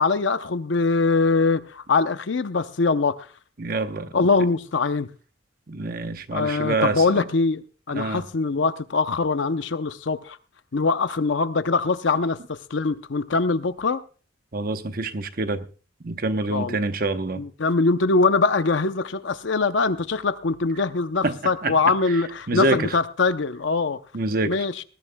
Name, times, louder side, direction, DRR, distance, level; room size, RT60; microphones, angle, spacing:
voice 1, 0.0-3.3 4.1-5.1 6.3-10.4 10.7-14.0 16.5-16.8 17.4-24.0 24.5-24.8, left 4 dB, 65° left, 0.6 m, -23 dB
voice 2, 3.6-4.1 5.7-7.2 7.9-8.2 14.5-15.7 16.0-17.4 21.2-21.7 22.5-22.9 24.1-24.6, right 2 dB, 45° right, 0.9 m, -26 dB
20.0 x 14.5 x 2.2 m
head